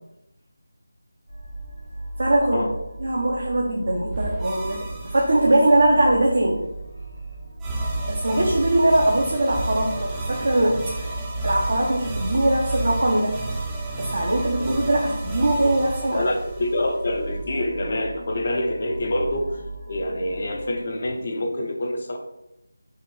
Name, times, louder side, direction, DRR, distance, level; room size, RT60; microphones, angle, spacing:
sound 1, 1.3-20.7, right 2 dB, 85° right, 1.5 m, -37 dB
voice 1, 2.2-2.7 3.0-6.6 8.1-13.4 14.0-16.2, right 1 dB, 60° right, -2 dB, 0.8 m, -21 dB
sound 2, 4.1-6.0 7.6-17.3, right 2 dB, 10° right, 0.5 m, -32 dB
voice 2, 16.1-22.2, left 1 dB, 45° left, 3 dB, 0.7 m, -26 dB
5.5 x 2.5 x 3.2 m, 0.87 s
figure-of-eight pair, 165°, 0 cm